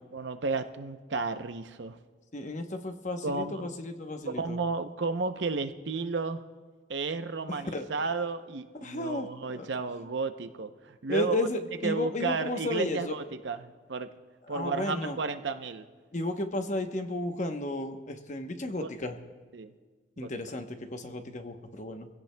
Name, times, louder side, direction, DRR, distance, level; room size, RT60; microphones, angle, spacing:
voice 1, 0.1-2.0 3.2-3.7 4.3-6.4 6.9-11.5 11.8-14.1 14.5-15.9 18.8-18.9 19.5-19.7 20.2-20.3, right 4 dB, 75° right, 9 dB, 0.7 m, -33 dB
voice 2, 2.3-4.6 7.5-7.9 8.7-9.7 11.1-13.2 14.5-15.2 16.1-19.2 20.2-22.1, left 2 dB, 40° left, 6 dB, 0.9 m, -33 dB
25.0 x 16.5 x 2.2 m, 1.5 s
head